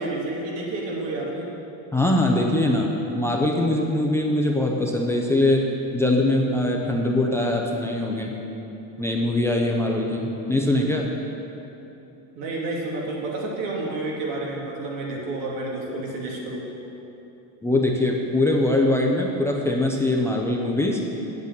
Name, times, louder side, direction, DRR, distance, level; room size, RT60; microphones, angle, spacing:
voice 1, 0.0-1.5 12.3-16.7, right 2 dB, 85° right, -3 dB, 3.0 m, -30 dB
voice 2, 1.9-8.3 9.0-11.1 17.6-21.0, left 1 dB, 5° left, 0 dB, 0.5 m, -22 dB
8.4 x 8.1 x 8.8 m, 3.0 s
cardioid pair, 160°, 47 cm